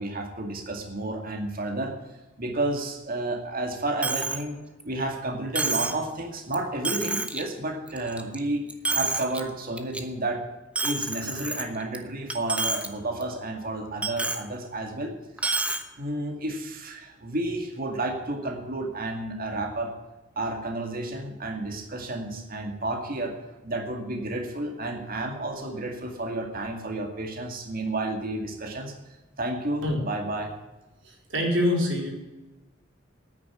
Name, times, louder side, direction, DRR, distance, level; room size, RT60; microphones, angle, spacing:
voice 1, 0.0-1.9 2.4-4.6 4.8-8.7 8.9-10.4 10.8-15.1 16.0-19.9 20.4-23.3 23.6-28.9 29.4-30.5, right 2 dB, 45° right, 3 dB, 2.2 m, -31 dB
Coin (dropping), 4.0-4.4 4.8-4.9 5.5-6.0 6.5-6.6 6.8-7.4 7.9-8.4 8.7-9.4 9.8-10.0 10.7-12.0 12.3-12.9 13.2-13.3 14.0-14.4 15.4-15.8, right 3 dB, 5° right, 1.0 m, -28 dB
voice 2, 31.0-32.1, left 1 dB, 70° right, -1 dB, 4.6 m, -25 dB
9.9 x 9.5 x 9.5 m, 1.1 s
head